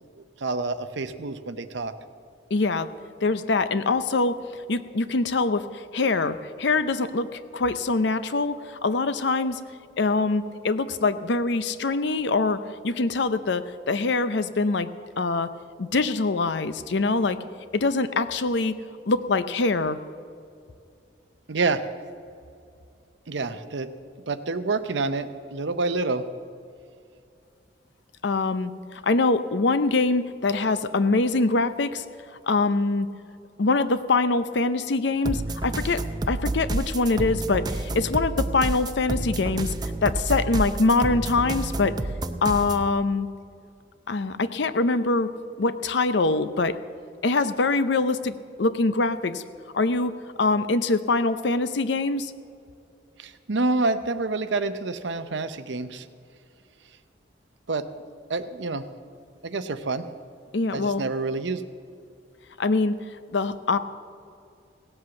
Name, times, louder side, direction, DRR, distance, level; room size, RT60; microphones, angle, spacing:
voice 1, 0.4-1.9 21.5-21.8 23.3-23.9 24.3-26.2 53.2-56.1 57.7-57.9 58.3-58.8 59.4-60.1 60.7-61.6, right 3 dB, 70° right, 11 dB, 0.7 m, -27 dB
voice 2, 2.5-2.9 3.2-9.6 10.0-14.9 15.2-15.5 15.8-17.4 17.7-18.7 19.1-20.0 28.2-32.0 32.5-33.1 33.6-39.7 40.0-42.0 42.4-43.3 44.1-45.3 45.6-46.8 47.2-49.4 49.7-50.1 50.4-52.3 60.5-61.0 62.6-63.0 63.3-63.8, left 3 dB, 65° left, 12 dB, 0.6 m, -24 dB
sound 1, 35.2-42.9, right 2 dB, 20° right, 0.5 m, -29 dB
17.5 x 7.9 x 7.0 m, 2.4 s
head